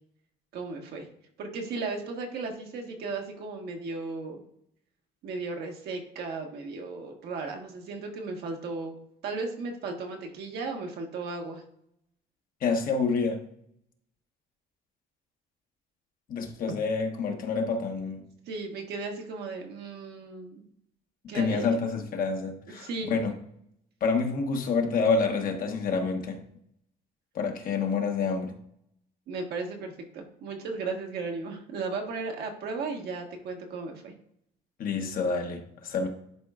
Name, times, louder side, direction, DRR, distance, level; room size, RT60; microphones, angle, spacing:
voice 1, 0.5-1.1 1.4-4.4 5.2-9.0 9.2-11.6 18.5-20.6 21.3-21.8 22.8-23.1 29.3-34.1, right 3 dB, 70° right, 2 dB, 1.3 m, -35 dB
voice 2, 12.6-13.4 16.3-18.2 21.3-23.3 24.0-26.4 27.3-28.5 34.8-36.1, left 4 dB, 55° left, 4 dB, 1.1 m, -28 dB
11.0 x 4.4 x 2.4 m, 0.72 s
cardioid pair, 110°, 17 cm